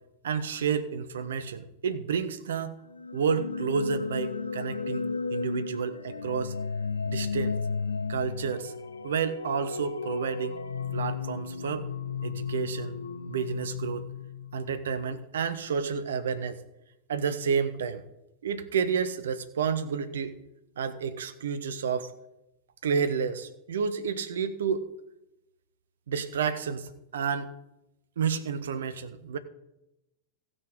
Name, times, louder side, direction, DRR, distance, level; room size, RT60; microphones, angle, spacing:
voice 1, 0.2-2.8 3.1-5.1 5.3-6.5 7.0-7.6 8.1-8.7 9.0-10.6 10.9-11.9 12.2-13.0 13.3-14.1 14.5-16.6 17.1-18.0 18.4-20.4 20.8-22.1 22.8-24.8 26.1-27.5 28.2-29.4, right 6 dB, 65° right, 11 dB, 0.8 m, -30 dB
sound 1, 2.9-14.8, left 5 dB, 75° left, 0.6 m, -34 dB
15.0 x 6.2 x 5.0 m, 0.91 s
figure-of-eight pair, 90°, 0 cm